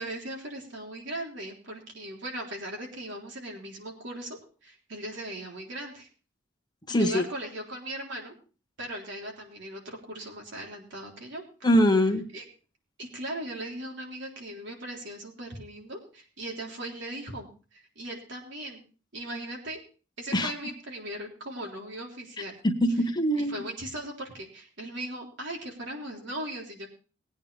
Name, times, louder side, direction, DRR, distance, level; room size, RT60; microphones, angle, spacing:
voice 1, 0.0-6.1 6.9-8.3 8.8-11.4 12.3-12.4 13.0-18.8 19.1-19.8 20.2-22.6 23.4-26.9, right 1 dB, 65° right, 0 dB, 3.7 m, -38 dB
voice 2, 6.9-7.2 11.6-12.2 20.3-20.5 22.6-23.6, equal, 20° left, 5 dB, 1.4 m, -23 dB
20.0 x 9.0 x 3.4 m, 0.36 s
head